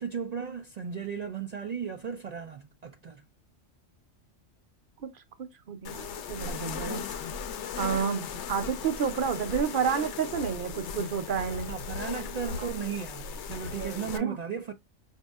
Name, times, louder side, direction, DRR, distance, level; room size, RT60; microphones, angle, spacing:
voice 1, 0.0-3.2 8.0-8.1 11.7-14.7, right 7 dB, 80° right, 0.3 m, -36 dB
voice 2, 5.4-7.0 7.8-11.7 12.6-12.7 13.8-14.4, right 7 dB, 50° right, 0.7 m, -30 dB
sound 1, 5.8-14.2, left 6 dB, 70° left, 0.9 m, -37 dB
5.1 x 2.7 x 2.3 m
omnidirectional pair, 1.3 m